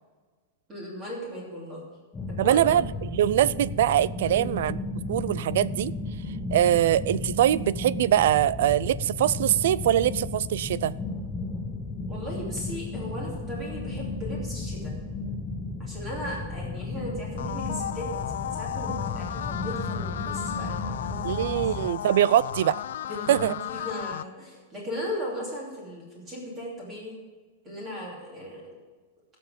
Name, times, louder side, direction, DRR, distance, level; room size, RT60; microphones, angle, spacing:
voice 1, 0.7-1.8 2.3-2.6 4.2-4.5 12.1-14.9 15.8-18.1 18.5-21.5 23.1-27.1 27.6-28.8, equal, 15° right, 2.8 m, -37 dB
sound 1, 2.1-21.9, left 3 dB, 10° left, 0.7 m, -34 dB
voice 2, 2.4-4.8 5.1-5.9 6.5-10.9 21.2-22.8 23.3-23.5, right 12 dB, 60° right, 0.4 m, -23 dB
sound 2, 17.4-24.2, left 10 dB, 75° left, 0.4 m, -34 dB
17.5 x 6.9 x 5.2 m
supercardioid pair, 175°, 0 cm